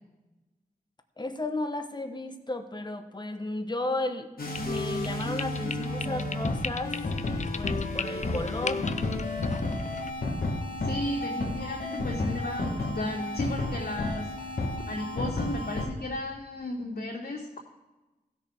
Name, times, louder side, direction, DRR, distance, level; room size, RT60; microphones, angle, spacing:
voice 1, 1.2-7.0 7.5-8.9, left 2 dB, 25° left, 7 dB, 1.1 m, -34 dB
sound 1, 4.4-15.9, left 2 dB, 65° left, 1.5 m, -32 dB
sound 2, 4.5-10.1, left 5 dB, 50° left, 0.5 m, -38 dB
voice 2, 10.8-14.3 14.9-17.6, left 1 dB, 80° left, -12 dB, 2.7 m, -34 dB
15.5 x 6.6 x 3.6 m, 1.1 s
cardioid pair, 50°, 16 cm